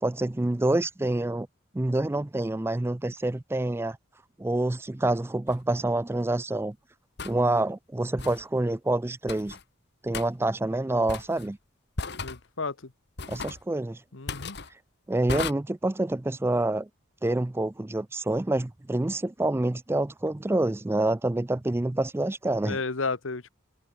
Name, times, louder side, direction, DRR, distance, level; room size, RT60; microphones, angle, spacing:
voice 1, 0.0-1.5 1.7-4.0 4.4-6.8 7.2-9.6 10.0-11.6 13.3-14.0 15.1-16.9 17.2-22.8, right 2 dB, 10° right, 0.4 m, -27 dB
sound 1, 5.5-5.6 7.2-7.4 8.2-8.4 9.3-9.6 10.1-10.3 11.1-11.5 12.0-12.4 13.2-13.6 14.3-14.7 15.3-15.5, left 4 dB, 55° left, 1.8 m, -35 dB
voice 2, 12.2-12.9 14.1-14.6 22.6-23.5, left 4 dB, 70° left, 1.2 m, -32 dB
head